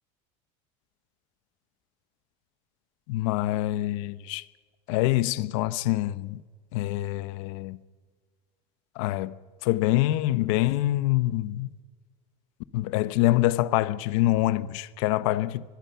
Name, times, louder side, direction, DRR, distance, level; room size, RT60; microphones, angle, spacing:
voice 1, 3.1-4.4 4.9-6.4 6.7-7.8 8.9-9.3 9.6-11.7 12.7-15.6, left 16 dB, 80° left, 1.0 m, -25 dB
23.5 x 22.5 x 5.8 m
cardioid pair, 150°, 16 cm